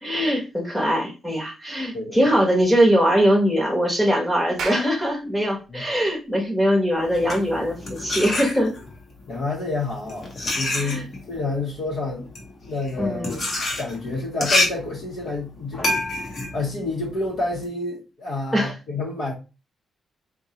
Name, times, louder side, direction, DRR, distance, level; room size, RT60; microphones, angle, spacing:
voice 1, 0.0-8.7 10.7-11.0 13.0-13.4 18.5-18.7, equal, 5° left, 0.9 m, -21 dB
Clapping, 4.4-9.2, right 5 dB, 75° right, 0.6 m, -39 dB
sound 1, 7.0-9.0 9.8-17.7, left 2 dB, 35° left, 0.8 m, -27 dB
voice 2, 9.3-12.3 12.7-13.4 13.8-15.9 16.1-19.3, left 2 dB, 65° left, 0.9 m, -29 dB
3.8 x 2.2 x 2.8 m
wide cardioid pair, 175°, 0 cm